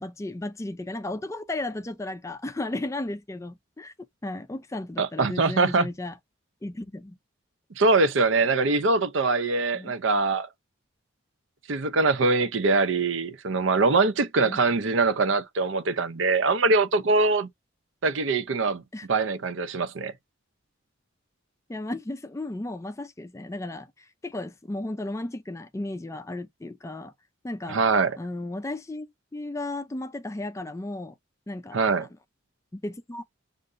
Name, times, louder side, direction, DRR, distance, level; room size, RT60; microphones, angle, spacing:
voice 1, 0.0-3.9 4.2-6.2 6.6-7.2 8.4-8.5 9.7-9.9 14.4-14.6 18.9-19.1 21.7-27.1 27.4-27.8 28.2-29.1 29.3-31.1 31.5-32.1 32.7-33.2, left 2 dB, 15° left, 0.3 m, -34 dB
voice 2, 5.0-5.9 7.8-10.5 11.7-17.5 18.0-18.8 19.1-20.1 27.7-28.2 31.7-32.1, right 3 dB, 70° right, 0.6 m, -23 dB
6.4 x 2.6 x 2.5 m
head